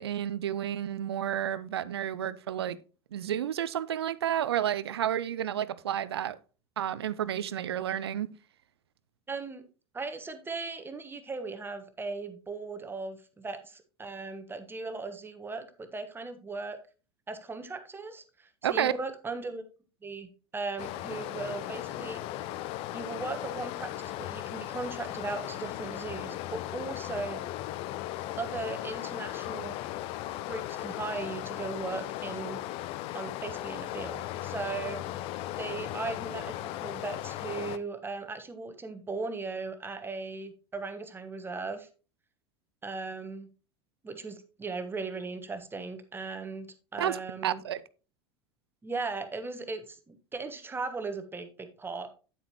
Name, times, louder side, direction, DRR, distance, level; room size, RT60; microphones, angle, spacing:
voice 1, 0.0-2.8 3.1-6.4 6.8-8.3 18.6-18.9 47.0-47.8, right 10 dB, 70° right, 0.6 m, -31 dB
voice 2, 9.3-9.7 9.9-16.8 17.3-19.6 20.0-22.2 22.9-27.4 28.4-29.8 30.5-32.6 33.1-35.0 35.6-41.9 42.8-43.5 44.0-47.6 48.8-52.1, right 3 dB, 15° right, 1.3 m, -38 dB
Stream, 20.8-37.8, left 14 dB, 45° left, 0.5 m, -37 dB
9.3 x 8.5 x 3.0 m
figure-of-eight pair, 75°, 14 cm